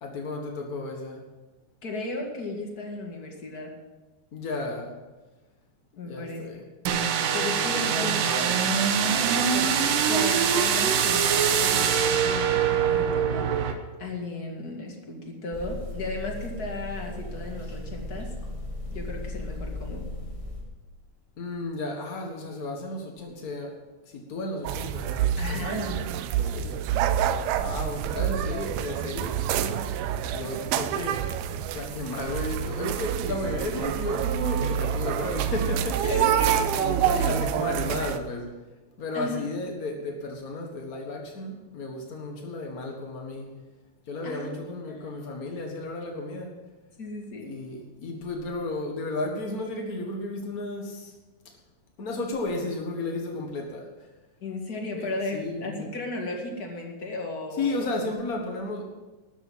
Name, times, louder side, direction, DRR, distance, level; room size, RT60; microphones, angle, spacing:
voice 1, 0.0-1.2 4.3-4.9 6.0-6.6 7.7-8.6 21.4-23.8 24.0-25.4 26.4-26.8 27.5-29.4 30.2-31.3 31.7-36.0 36.4-36.5 37.0-38.5 39.0-43.5 44.1-46.5 47.4-51.1 52.0-53.9 55.0-55.9 57.6-58.8, left 2 dB, 75° left, 1 dB, 0.8 m, -33 dB
voice 2, 1.8-3.7 6.0-6.4 7.3-13.7 14.0-18.3 18.9-20.0 25.4-26.0 36.0-37.3 39.1-39.4 44.2-45.3 47.0-47.5 54.4-57.9, left 2 dB, 35° left, 1 dB, 1.8 m, -35 dB
sound 1, 6.9-13.7, right 7 dB, 70° right, 2.5 m, -23 dB
sound 2, 15.5-20.6, left 1 dB, 10° left, 2.4 m, -36 dB
sound 3, 24.6-38.2, right 9 dB, 90° right, 2.6 m, -27 dB
13.0 x 9.1 x 7.4 m, 1.2 s
omnidirectional pair, 4.3 m